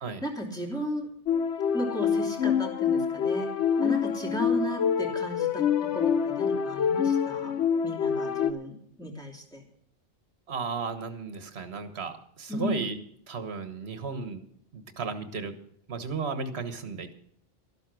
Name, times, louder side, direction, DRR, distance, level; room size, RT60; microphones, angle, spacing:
voice 1, 0.2-1.1 1.7-3.5 3.8-7.5 7.8-9.6 12.5-12.8, equal, 5° left, -1 dB, 3.0 m, -35 dB
sound 1, 1.3-8.5, left 7 dB, 70° left, 1.1 m, -26 dB
voice 2, 10.5-13.0 13.3-14.4 14.7-15.5 15.9-17.1, right 4 dB, 60° right, 9 dB, 1.6 m, -34 dB
13.0 x 12.0 x 6.2 m, 0.65 s
omnidirectional pair, 1.2 m